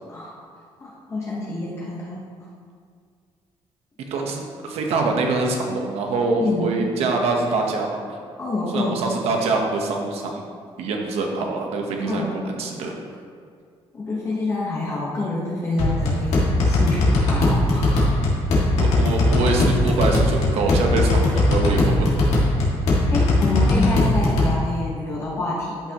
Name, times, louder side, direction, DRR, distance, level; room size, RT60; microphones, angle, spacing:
voice 1, 0.1-0.4 0.8-2.2 6.4-6.9 8.4-9.0 12.0-12.3 13.9-18.2 21.7-21.8 23.1-25.9, left 2 dB, 25° left, -6 dB, 1.1 m, -27 dB
voice 2, 4.1-8.2 8.7-10.4 10.8-12.2 12.6-13.0 18.8-22.1, right 3 dB, 75° right, 1 dB, 1.1 m, -24 dB
sound 1, 15.8-24.5, left 2 dB, 85° left, 2.0 m, -19 dB
12.0 x 5.8 x 3.0 m, 2.1 s
cardioid pair, 175°, 11 cm